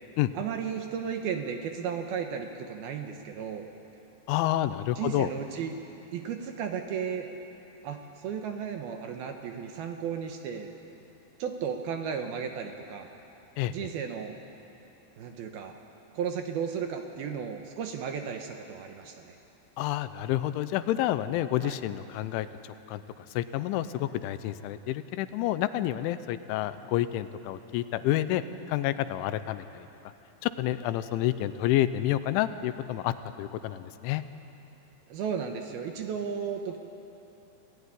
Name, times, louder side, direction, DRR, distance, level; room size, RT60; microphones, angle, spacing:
voice 1, 0.3-3.7 5.0-5.8 6.1-7.3 7.8-10.7 11.4-13.1 13.7-14.4 15.2-15.8 16.1-19.4 21.6-21.8 35.1-36.8, right 7 dB, 70° right, 4 dB, 2.6 m, -34 dB
voice 2, 4.3-5.3 13.6-13.7 19.8-28.4 28.7-29.9 30.4-34.2, left 13 dB, 85° left, 12 dB, 3.2 m, -29 dB
27.0 x 17.0 x 9.9 m, 3.0 s
omnidirectional pair, 5.4 m